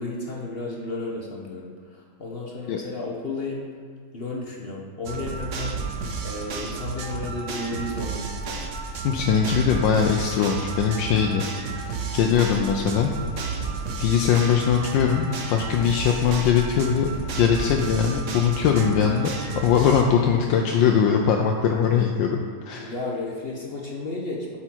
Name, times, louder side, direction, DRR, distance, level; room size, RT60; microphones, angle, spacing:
voice 1, 0.0-3.7 4.1-5.8 6.2-8.6 22.8-24.6, left 2 dB, 45° left, -2 dB, 0.8 m, -33 dB
sound 1, 5.1-20.0, right 4 dB, 55° right, 0.9 m, -32 dB
voice 2, 9.0-11.4 11.7-13.1 14.0-19.3 19.6-22.4 22.7-22.9, left 7 dB, 90° left, 1 dB, 1.3 m, -21 dB
7.7 x 6.0 x 4.5 m, 2.1 s
omnidirectional pair, 2.0 m